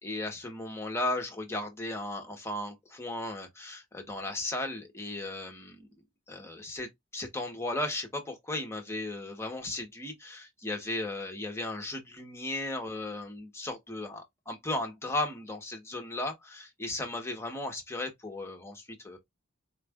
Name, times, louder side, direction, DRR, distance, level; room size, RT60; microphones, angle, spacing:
voice 1, 0.0-5.9 6.3-19.2, left 2 dB, 15° left, 0.9 m, -36 dB
4.4 x 2.4 x 3.4 m
head